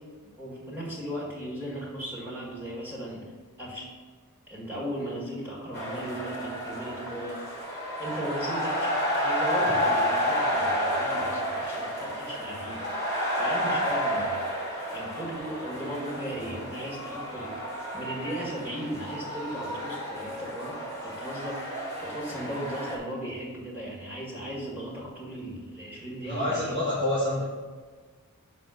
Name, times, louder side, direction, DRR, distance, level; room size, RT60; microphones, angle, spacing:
voice 1, 0.4-3.3 3.6-3.9 4.5-7.4 8.0-12.8 13.4-14.4 14.9-17.6 17.9-20.8 21.0-21.7 22.0-26.8, right 1 dB, 10° right, -6 dB, 1.8 m, -36 dB
sound 1, 5.7-23.0, equal, 30° right, 1.7 m, -30 dB
voice 2, 26.2-27.4, left 1 dB, 55° right, -8 dB, 1.4 m, -27 dB
6.2 x 4.2 x 5.2 m, 1.4 s
head